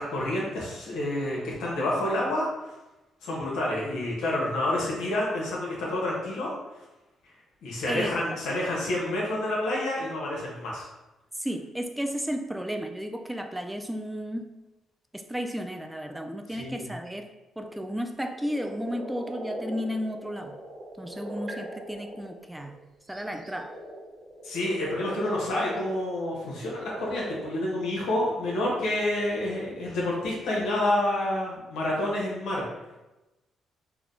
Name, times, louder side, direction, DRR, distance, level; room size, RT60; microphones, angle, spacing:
voice 1, 0.0-2.5 3.2-6.5 7.6-10.8 16.5-16.8 24.4-32.6, left 1 dB, 80° left, -4 dB, 1.1 m, -28 dB
voice 2, 7.9-8.4 11.4-14.5 15.1-17.3 17.6-20.6 21.0-22.8 23.1-23.7, equal, 5° right, 5 dB, 0.3 m, -33 dB
sound 1, 17.6-17.8 18.2-22.8 23.1-27.4, right 1 dB, 50° right, 1.4 m, -40 dB
3.4 x 2.2 x 3.7 m, 1.0 s
cardioid pair, 90°, 0 cm